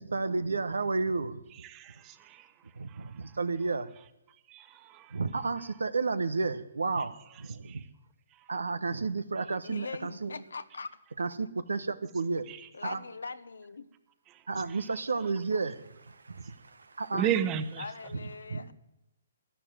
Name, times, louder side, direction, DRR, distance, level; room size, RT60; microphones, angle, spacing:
voice 1, 0.0-1.4 2.8-3.9 5.1-7.8 8.5-10.3 11.2-12.5 12.8-13.0 14.5-17.3 18.5-18.7, right 4 dB, 85° right, 13 dB, 1.1 m, -32 dB
voice 2, 1.5-2.5 2.9-3.4 4.5-5.2 7.6-7.9 12.5-12.7 14.3-14.4 14.7-14.8 17.1-17.9, right 9 dB, 25° right, 11 dB, 1.2 m, -34 dB
voice 3, 9.5-11.0 12.7-13.9 17.8-18.7, left 4 dB, 80° left, 13 dB, 1.0 m, -41 dB
12.5 x 12.0 x 9.1 m, 0.89 s
hypercardioid pair, 135°, 0 cm